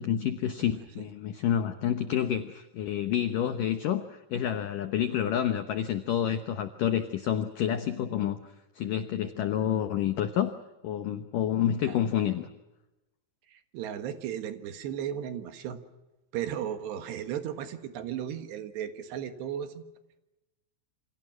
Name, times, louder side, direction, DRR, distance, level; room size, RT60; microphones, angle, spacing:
voice 1, 0.0-8.4 8.7-10.6 10.8-12.5, left 10 dB, 80° left, 9 dB, 1.9 m, -29 dB
voice 2, 13.5-15.8 16.3-19.9, right 9 dB, 70° right, 8 dB, 3.5 m, -35 dB
28.5 x 26.0 x 6.1 m, 1.0 s
omnidirectional pair, 5.4 m